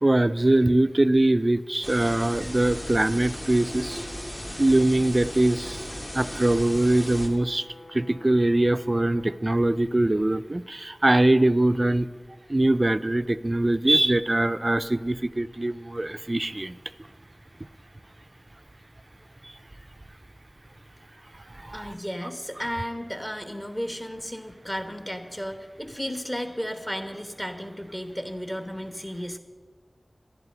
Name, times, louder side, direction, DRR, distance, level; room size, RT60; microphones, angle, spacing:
voice 1, 0.0-4.0 4.6-5.8 6.1-7.6 7.9-12.1 12.5-16.7 21.6-21.9, right 1 dB, 35° right, 13 dB, 0.3 m, -22 dB
sound 1, 1.8-7.3, equal, 40° left, 1.7 m, -36 dB
Brass instrument, 5.3-9.5, left 2 dB, 70° left, 0.6 m, -50 dB
voice 2, 21.7-29.4, equal, 15° left, 6 dB, 1.1 m, -34 dB
11.5 x 11.0 x 5.4 m, 1.5 s
wide cardioid pair, 60°, 0 cm